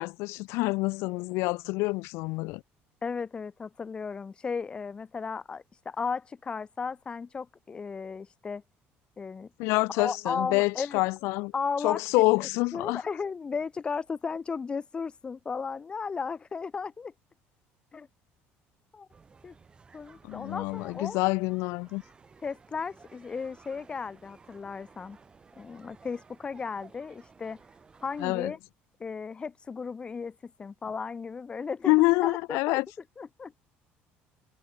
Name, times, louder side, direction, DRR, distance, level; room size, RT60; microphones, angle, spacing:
voice 1, 0.0-2.6 9.6-11.5 11.8-13.0 20.2-22.0 28.2-28.5 31.9-32.9, left 24 dB, 80° left, 0.6 m, -27 dB
voice 2, 3.0-8.6 9.2-9.5 9.9-11.0 11.5-17.1 17.9-18.1 18.9-19.1 19.4-19.6 19.9-21.2 22.4-25.2 25.6-27.6 28.0-28.6 29.0-32.8 33.2-33.5, left 5 dB, 20° left, 3.5 m, -35 dB
sound 1, 19.1-28.3, right 5 dB, 20° right, 6.7 m, -56 dB
cardioid pair, 150°, 5 cm